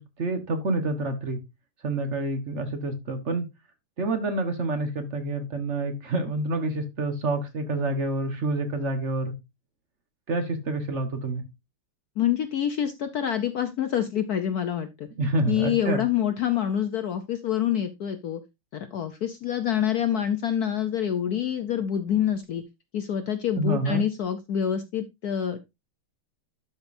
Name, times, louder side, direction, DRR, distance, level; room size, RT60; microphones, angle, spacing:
voice 1, 0.0-1.4 1.8-3.5 4.0-9.3 10.3-11.4 15.2-16.0 23.6-24.0, right 2 dB, 40° right, 7 dB, 1.4 m, -28 dB
voice 2, 12.2-15.1 15.5-18.4 18.7-22.6 22.9-25.6, left 9 dB, 70° left, 9 dB, 0.9 m, -26 dB
12.0 x 5.3 x 2.6 m, 0.23 s
omnidirectional pair, 2.4 m